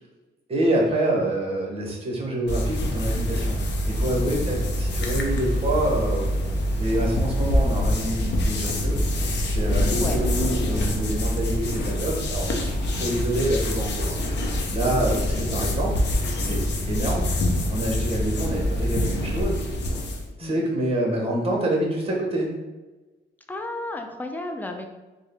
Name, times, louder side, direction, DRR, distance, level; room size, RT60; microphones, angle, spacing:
voice 1, 0.5-6.3 6.8-9.0 9.4-16.0 16.4-17.3 17.7-19.6 20.4-22.5, right 1 dB, 30° right, -1 dB, 1.0 m, -27 dB
sound 1, 2.5-20.3, left 1 dB, 60° left, 0.7 m, -25 dB
voice 2, 13.0-13.3 20.4-20.7 23.5-24.9, left 2 dB, 10° left, 4 dB, 0.4 m, -33 dB
3.6 x 2.2 x 3.4 m, 1.2 s
cardioid pair, 90°, 20 cm